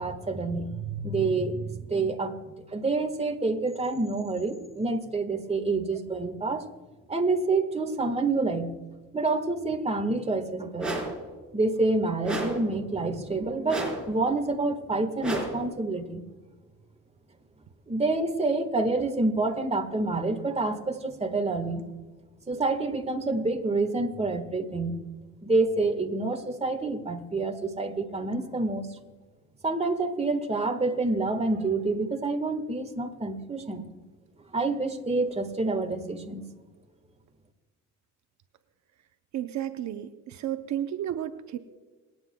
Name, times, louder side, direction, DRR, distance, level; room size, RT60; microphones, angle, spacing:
voice 1, 0.0-6.7 7.1-8.7 9.1-10.9 11.5-16.2 17.9-21.8 22.5-25.0 25.4-28.9 29.6-33.9 34.5-36.4, right 3 dB, 20° right, 6 dB, 1.5 m, -28 dB
sound 1, 10.8-11.3 12.2-12.7 13.7-14.2 15.2-15.7, right 1 dB, 5° right, 4.1 m, -32 dB
voice 2, 39.3-41.6, right 11 dB, 70° right, 8 dB, 0.7 m, -32 dB
27.5 x 9.6 x 2.2 m, 1.3 s
cardioid pair, 90°, 30 cm